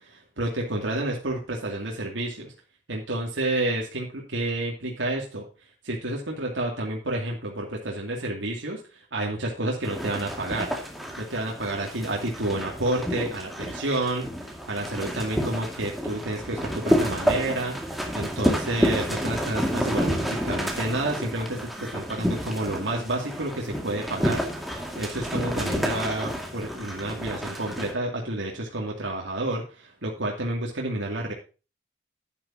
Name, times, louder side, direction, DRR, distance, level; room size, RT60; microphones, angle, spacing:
voice 1, 0.0-2.5 2.9-5.4 5.8-8.8 9.1-10.7 11.2-31.3, right 1 dB, 90° right, -1 dB, 2.5 m, -30 dB
sound 1, 9.8-27.9, equal, ahead, 2.1 m, -30 dB
11.5 x 10.0 x 2.8 m, 0.33 s
head